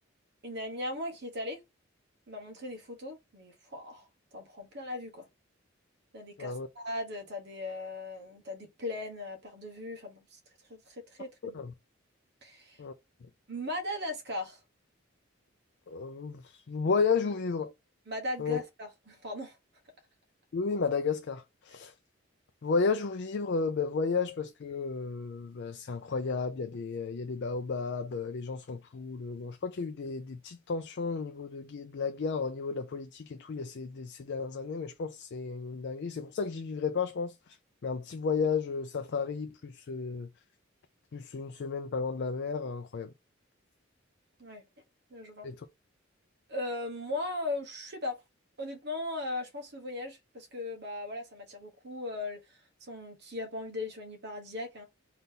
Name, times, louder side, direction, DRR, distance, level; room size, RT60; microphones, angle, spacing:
voice 1, 0.4-1.6 2.3-4.1 4.3-5.3 6.1-10.4 10.7-11.6 12.4-12.8 13.5-14.6 18.1-19.6 44.4-44.6 45.1-45.5 46.5-48.1 48.6-54.8, left 2 dB, 55° right, 1.2 m, -38 dB
voice 2, 15.9-17.7 18.4-18.6 20.5-21.9 22.6-37.3 37.8-40.3 41.1-43.1 45.4-45.5, left 5 dB, 55° left, 0.4 m, -33 dB
3.9 x 2.8 x 3.7 m
head